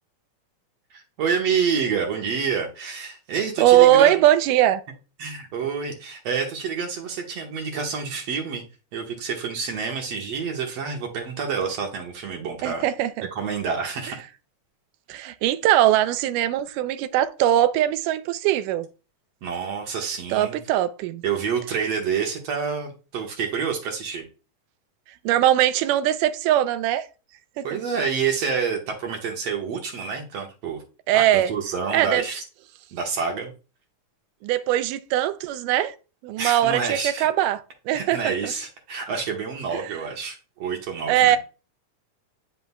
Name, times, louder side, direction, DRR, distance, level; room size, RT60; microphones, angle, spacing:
voice 1, 0.9-4.1 5.2-8.6 8.9-12.8 13.3-14.2 19.4-20.6 21.2-24.3 27.6-30.8 31.1-32.4 32.9-33.5 36.4-37.3 37.9-41.4, right 6 dB, 60° right, 2.2 m, -28 dB
voice 2, 3.6-4.8 12.6-13.3 15.1-18.9 20.3-21.2 25.3-27.1 27.6-27.8 31.1-31.5 31.9-32.2 34.4-36.0 36.2-37.6 37.9-38.5 39.7-40.0 41.1-41.4, right 12 dB, 85° right, 2.2 m, -21 dB
9.9 x 5.6 x 2.3 m
omnidirectional pair, 3.7 m